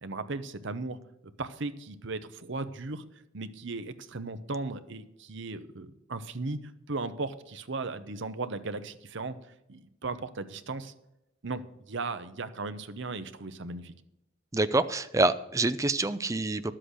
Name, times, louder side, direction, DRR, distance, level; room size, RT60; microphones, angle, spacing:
voice 1, 0.0-1.0 1.4-3.0 3.3-6.6 6.9-9.4 9.7-10.9 11.4-13.9, right 3 dB, 60° right, 11 dB, 0.9 m, -36 dB
voice 2, 14.5-16.7, right 2 dB, 15° right, 12 dB, 0.5 m, -26 dB
12.0 x 7.8 x 6.4 m, 0.86 s
head